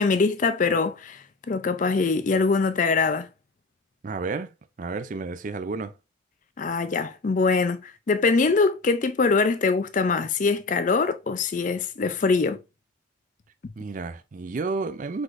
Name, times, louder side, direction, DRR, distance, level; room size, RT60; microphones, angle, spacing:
voice 1, 0.0-3.3 6.6-12.6, left 4 dB, 40° left, 0.4 m, -23 dB
voice 2, 4.0-5.9 13.8-15.2, right 3 dB, 40° right, 0.4 m, -31 dB
4.8 x 4.0 x 2.5 m
head